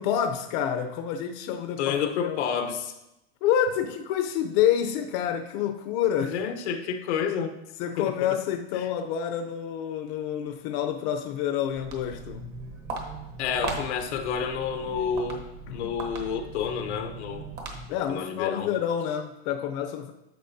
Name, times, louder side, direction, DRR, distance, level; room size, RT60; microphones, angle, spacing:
voice 1, 0.0-1.9 2.2-2.4 3.4-6.4 7.8-12.4 15.7-15.9 17.9-20.1, left 9 dB, 50° left, 5 dB, 0.7 m, -28 dB
voice 2, 1.8-2.9 6.2-7.6 8.0-8.4 8.7-8.9 13.4-15.4 15.7-17.5 18.1-18.7, left 7 dB, 90° left, 5 dB, 1.0 m, -29 dB
Walk footsteps, 11.6-18.1, right 3 dB, 30° right, 1.2 m, -38 dB
10.5 x 6.5 x 2.7 m, 0.92 s
supercardioid pair, 150°, 33 cm